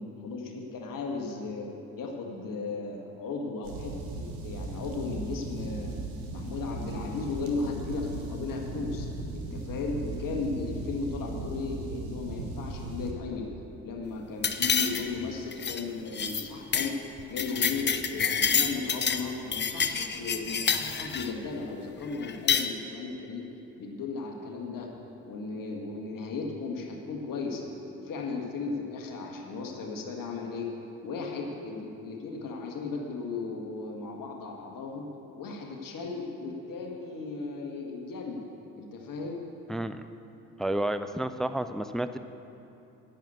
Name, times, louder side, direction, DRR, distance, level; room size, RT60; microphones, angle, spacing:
voice 1, 0.0-1.7 2.0-6.0 6.3-9.1 9.3-13.5 13.8-16.9 17.3-23.5 23.8-24.9 25.2-27.7 28.0-30.7 31.0-35.1 35.4-38.4 38.8-39.4, left 4 dB, 50° left, 1 dB, 1.9 m, -36 dB
sound 1, 3.6-13.1, right 2 dB, 80° right, 1.1 m, -37 dB
sound 2, 14.4-15.2 15.5-15.8 16.1-16.4 16.7-16.9 17.2-19.2 19.5-21.3 22.2-22.7, left 6 dB, 25° left, 0.7 m, -27 dB
voice 2, 39.7-40.0 40.6-42.2, right 1 dB, ahead, 11 dB, 0.3 m, -30 dB
10.5 x 9.4 x 7.0 m, 2.9 s
figure-of-eight pair, 45°, 42 cm